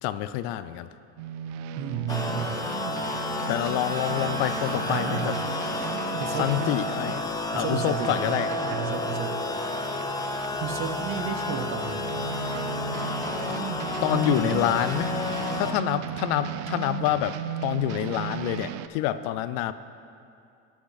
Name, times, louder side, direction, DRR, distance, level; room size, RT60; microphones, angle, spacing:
voice 1, 0.0-0.9 3.5-5.3 6.4-7.2 7.5-8.7 14.0-15.1 15.6-19.7, left 13 dB, 75° left, 14 dB, 0.5 m, -27 dB
sound 1, 1.2-10.6 11.0-18.9, right 9 dB, 80° right, 0.5 m, -36 dB
voice 2, 1.8-2.6 4.9-5.5 6.2-6.7 7.5-8.4 8.7-9.4 10.6-12.3 14.1-14.8, right 8 dB, 35° right, 7 dB, 0.7 m, -32 dB
sound 2, 2.1-15.7, left 2 dB, 10° left, 0.4 m, -31 dB
14.0 x 6.2 x 4.0 m, 2.4 s
cardioid pair, 135°, 35 cm